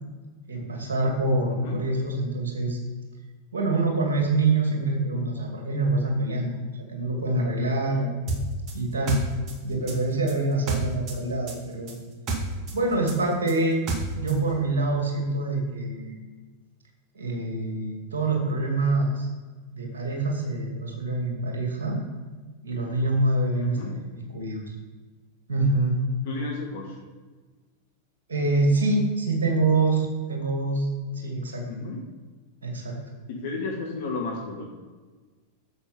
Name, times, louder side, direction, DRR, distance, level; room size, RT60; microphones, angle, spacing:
voice 1, 0.5-2.8 3.5-6.6 6.9-8.1 8.7-9.2 9.6-11.9 12.7-13.8 14.2-16.2 17.1-19.3 19.7-22.0 22.6-24.0 24.3-24.7 25.5-26.0 28.3-30.9 31.1-31.6 32.6-32.9, right 2 dB, 65° right, 0 dB, 2.5 m, -25 dB
voice 2, 1.5-1.8 23.6-23.9 26.2-26.9 31.7-32.0 33.3-34.6, left 3 dB, 50° left, -1 dB, 1.7 m, -33 dB
sound 1, 8.3-11.2 11.5-14.4, right 3 dB, 35° right, 2.1 m, -30 dB
9.9 x 7.3 x 5.5 m, 1.4 s
figure-of-eight pair, 90°, 0 cm